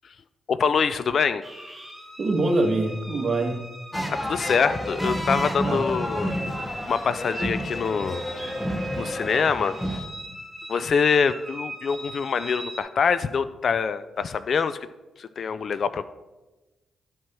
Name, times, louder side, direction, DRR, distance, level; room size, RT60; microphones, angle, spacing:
voice 1, 0.5-1.4 4.1-6.3 6.9-8.2 9.0-9.7 10.7-14.8 15.2-16.0, left 6 dB, 60° left, 14 dB, 0.4 m, -24 dB
sound 1, 1.4-12.8, equal, 10° right, 1.8 m, -40 dB
voice 2, 2.2-3.7 5.7-6.3, right 2 dB, 45° right, 2 dB, 1.6 m, -25 dB
sound 2, 3.9-10.0, equal, 10° left, 1.1 m, -30 dB
11.5 x 4.7 x 4.3 m, 1.1 s
supercardioid pair, 60°, 0 cm